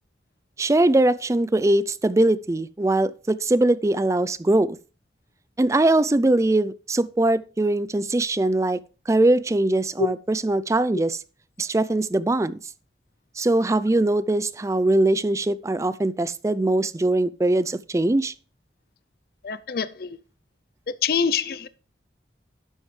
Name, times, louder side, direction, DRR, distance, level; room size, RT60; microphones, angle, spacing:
voice 1, 0.6-4.8 5.6-8.8 9.1-11.2 11.6-12.6 13.4-18.3, right 2 dB, 15° right, 0.3 m, -21 dB
voice 2, 19.4-20.2 21.0-21.7, left 6 dB, 55° left, 0.5 m, -25 dB
11.0 x 8.0 x 3.2 m
head